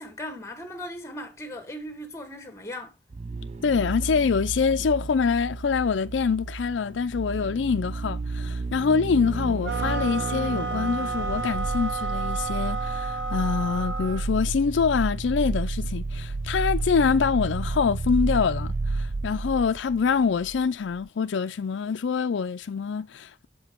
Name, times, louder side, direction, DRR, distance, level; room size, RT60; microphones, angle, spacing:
voice 1, 0.0-2.9, left 1 dB, 15° left, 1.2 m, -38 dB
sound 1, 3.1-20.6 20.9-21.0, right 3 dB, 35° right, 0.4 m, -31 dB
voice 2, 3.6-23.5, left 5 dB, 85° left, 0.4 m, -25 dB
sound 2, 9.6-14.3, right 4 dB, 85° right, 0.8 m, -31 dB
7.6 x 5.1 x 4.4 m
head